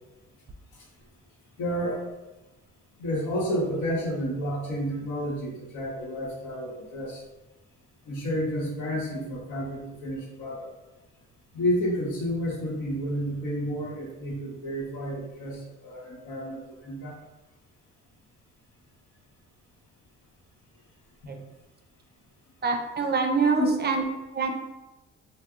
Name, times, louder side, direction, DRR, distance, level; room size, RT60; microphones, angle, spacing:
voice 1, 1.6-2.0 3.0-7.2 8.1-10.7 11.5-17.2 21.2-21.4 23.6-23.7, equal, 80° left, -2 dB, 0.9 m, -30 dB
voice 2, 22.6-24.0 24.3-24.5, right 4 dB, 35° right, 4 dB, 0.4 m, -25 dB
2.6 x 2.0 x 3.5 m, 1.1 s
cardioid pair, 90°, 30 cm